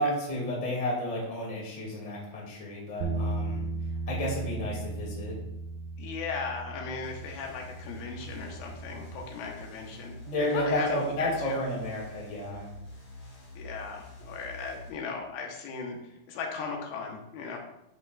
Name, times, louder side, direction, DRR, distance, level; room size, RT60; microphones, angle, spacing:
voice 1, 0.0-3.7 4.1-5.4 10.2-12.7, left 1 dB, 15° left, -4 dB, 1.4 m, -31 dB
sound 1, 3.0-9.3, right 3 dB, 90° right, 1.9 m, -36 dB
voice 2, 6.0-11.6 13.6-17.6, left 5 dB, 75° left, 1 dB, 2.8 m, -37 dB
sound 2, 7.0-14.9, left 1 dB, 35° left, 3.5 m, -47 dB
11.0 x 5.5 x 2.3 m, 0.85 s
omnidirectional pair, 4.5 m